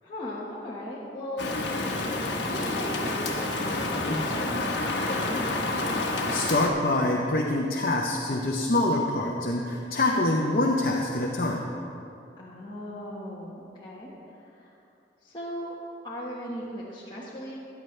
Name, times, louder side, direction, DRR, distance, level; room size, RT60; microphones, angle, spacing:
voice 1, 0.0-1.6 2.4-5.8 12.4-14.8 15.2-15.8 16.0-17.6, equal, 25° left, -8 dB, 1.4 m, -38 dB
Rain, 1.4-6.7, left 2 dB, 75° left, 1.2 m, -28 dB
voice 2, 5.9-11.7, left 2 dB, 50° left, -1 dB, 0.8 m, -25 dB
14.5 x 10.5 x 3.3 m, 2.6 s
head